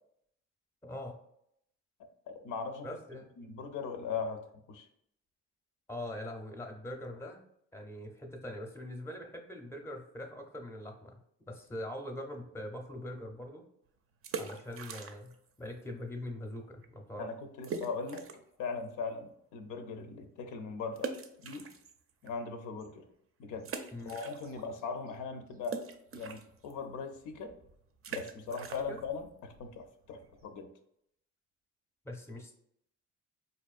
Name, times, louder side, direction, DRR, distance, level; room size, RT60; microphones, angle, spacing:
voice 1, 0.8-1.2 2.8-3.3 5.9-7.4 7.7-13.6 14.4-17.3 23.9-24.2 28.9-29.0 32.0-32.5, left 1 dB, 10° left, 4 dB, 0.6 m, -42 dB
voice 2, 2.3-2.9 3.4-4.9 17.2-18.3 18.6-21.1 21.4-21.7 22.2-23.0 23.4-25.8 26.1-27.5 28.1-30.7, left 5 dB, 85° left, 6 dB, 0.5 m, -39 dB
sound 1, 14.1-15.5 15.7-15.8 16.4-16.6 16.8-16.9 17.6-18.6 19.0-19.1 21.0-22.3 22.8-22.9 23.6-24.8 25.1-30.6, right 5 dB, 50° right, 0.5 m, -43 dB
4.3 x 2.6 x 2.4 m, 0.74 s
cardioid pair, 90°, 30 cm